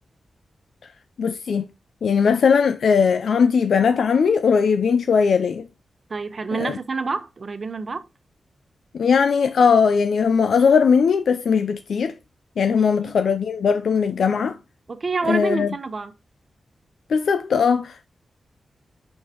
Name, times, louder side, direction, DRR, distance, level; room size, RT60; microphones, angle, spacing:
voice 1, 1.2-1.7 2.0-5.7 6.6-6.7 8.9-12.1 12.6-14.6 15.3-15.7 17.1-18.0, left 6 dB, 75° left, 0.5 m, -19 dB
voice 2, 6.1-8.1 12.8-13.2 14.9-16.1, right 4 dB, 40° right, 1.0 m, -28 dB
6.6 x 5.9 x 2.9 m
wide cardioid pair, 115°, 0 cm